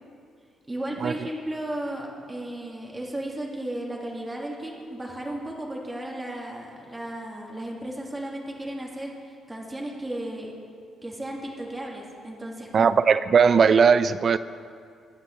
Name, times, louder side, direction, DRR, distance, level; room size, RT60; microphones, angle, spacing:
voice 1, 0.7-10.5 11.0-12.9, right 1 dB, 15° right, -2 dB, 1.8 m, -34 dB
voice 2, 12.7-14.4, right 6 dB, 50° right, 15 dB, 0.3 m, -18 dB
20.5 x 7.9 x 3.1 m, 2.4 s
cardioid pair, 90°, 0 cm